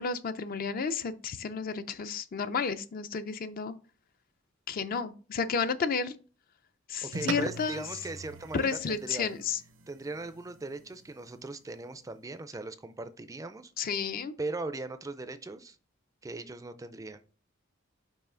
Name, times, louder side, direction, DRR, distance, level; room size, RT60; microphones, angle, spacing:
voice 1, 0.0-3.7 4.7-6.1 6.9-7.8 8.5-9.6 13.8-14.3, left 5 dB, 45° left, 11 dB, 0.4 m, -32 dB
voice 2, 7.0-9.3 9.9-13.7 14.4-15.8 16.2-17.2, right 2 dB, 15° right, 11 dB, 0.4 m, -39 dB
sound 1, 7.1-11.8, right 4 dB, 70° right, 0.6 m, -42 dB
5.5 x 4.7 x 3.7 m, 0.37 s
head